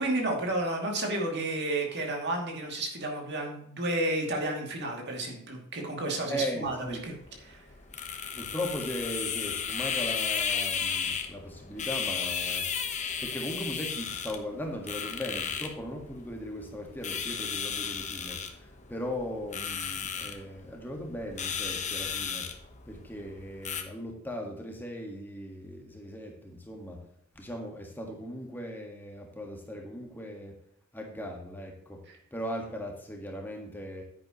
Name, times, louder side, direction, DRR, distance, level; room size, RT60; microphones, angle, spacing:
voice 1, 0.0-7.1 7.5-7.7, right 1 dB, 50° right, 0 dB, 2.6 m, -31 dB
voice 2, 6.3-7.0 8.3-12.7 13.2-22.5 22.9-27.0 27.3-30.6 30.9-34.0, equal, 10° left, 1 dB, 1.6 m, -38 dB
sound 1, 6.6-23.8, left 7 dB, 35° left, 1.1 m, -34 dB
10.0 x 9.7 x 3.1 m, 0.72 s
head